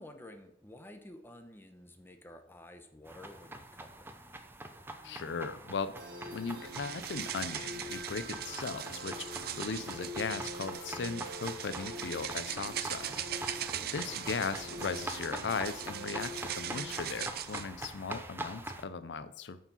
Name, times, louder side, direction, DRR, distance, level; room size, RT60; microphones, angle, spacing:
voice 1, 0.0-4.1 13.8-14.2, left 1 dB, 15° left, 6 dB, 0.9 m, -52 dB
sound 1, 3.1-18.9, right 2 dB, 15° right, 0.7 m, -44 dB
voice 2, 5.0-5.9 6.3-13.2 13.9-19.6, left 5 dB, 75° left, 13 dB, 0.5 m, -38 dB
sound 2, 6.0-17.2, left 1 dB, 85° right, 2.8 m, -46 dB
sound 3, 6.6-17.7, right 10 dB, 60° right, 0.5 m, -41 dB
9.2 x 4.9 x 5.5 m, 0.72 s
head